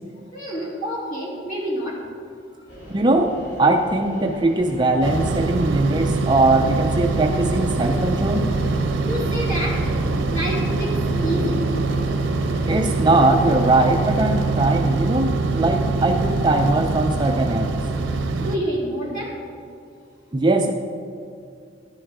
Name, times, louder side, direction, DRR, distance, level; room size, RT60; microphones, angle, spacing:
voice 1, 0.3-2.0 9.1-9.8 10.3-10.9 11.2-11.6 18.4-19.3, equal, 45° left, -5 dB, 3.3 m, -27 dB
sound 1, 2.7-14.9, right 1 dB, 65° left, 3.2 m, -36 dB
voice 2, 2.9-8.5 12.7-17.7 20.3-20.7, right 2 dB, 25° right, 4 dB, 0.5 m, -20 dB
sound 2, 5.0-18.6, right 3 dB, 85° right, 0.7 m, -23 dB
13.5 x 11.0 x 3.7 m, 2.4 s
head